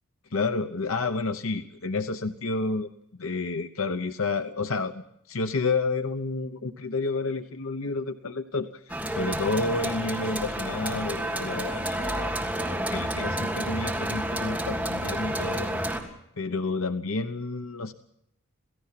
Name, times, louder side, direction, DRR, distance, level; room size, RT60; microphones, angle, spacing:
voice 1, 0.3-2.9 3.2-8.8 9.2-17.9, left 3 dB, 70° left, 8 dB, 0.9 m, -30 dB
sound 1, 8.9-16.0, right 1 dB, 5° right, 3.0 m, -30 dB
28.5 x 17.5 x 5.9 m, 0.77 s
head